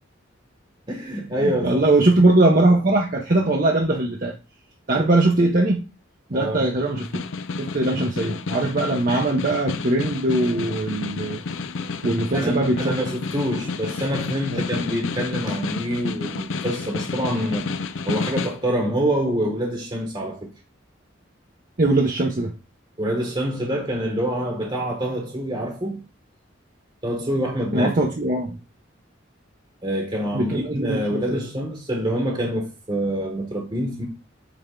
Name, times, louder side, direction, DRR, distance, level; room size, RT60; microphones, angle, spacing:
voice 1, 0.9-1.8 6.3-6.7 12.3-17.7 18.1-20.5 23.0-26.0 27.0-27.9 29.8-34.0, equal, 25° right, 1.1 m, -26 dB
voice 2, 1.4-4.3 4.9-5.8 6.3-7.2 7.6-11.4 12.0-13.0 14.5-14.6 21.8-22.5 27.7-28.6 30.3-31.4, right 2 dB, 45° right, 0.8 m, -21 dB
Snare drum, 6.8-18.6, left 4 dB, 75° left, 0.5 m, -30 dB
8.2 x 3.5 x 3.7 m
head